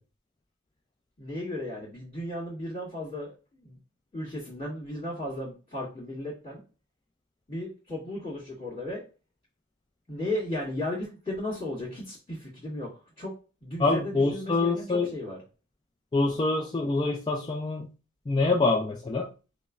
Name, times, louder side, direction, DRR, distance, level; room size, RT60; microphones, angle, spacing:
voice 1, 1.2-3.8 4.1-6.6 7.5-9.0 10.1-12.9 13.2-13.3 13.6-15.4, left 1 dB, 40° left, -12 dB, 1.8 m, -35 dB
voice 2, 13.8-15.1 16.1-17.9 18.3-19.3, left 3 dB, 20° left, -1 dB, 0.3 m, -25 dB
5.3 x 2.0 x 2.4 m, 0.33 s
head